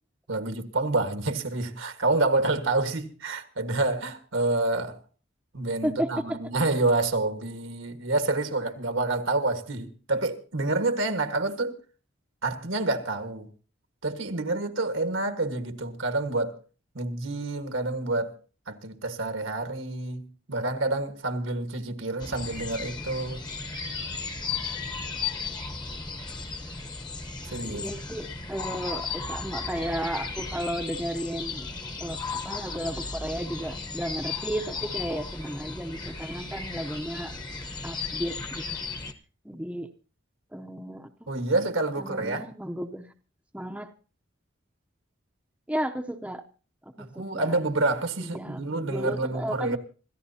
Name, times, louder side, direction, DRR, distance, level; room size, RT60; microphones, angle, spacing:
voice 1, 0.3-5.0 5.5-11.8 12.4-13.5 14.0-16.6 16.9-18.3 18.7-23.5 27.5-27.8 41.3-42.5 47.0-49.8, right 2 dB, 80° right, 1.6 m, -28 dB
voice 2, 5.8-6.4 27.6-31.7 32.0-32.2 32.4-37.3 37.8-38.8 39.4-39.9 40.5-41.3 42.0-43.1 43.5-43.9 45.7-46.4 47.0-47.5 48.2-49.8, equal, 5° right, 0.7 m, -33 dB
sound 1, 22.2-39.1, left 4 dB, 20° left, 1.0 m, -35 dB
26.5 x 14.0 x 2.8 m
head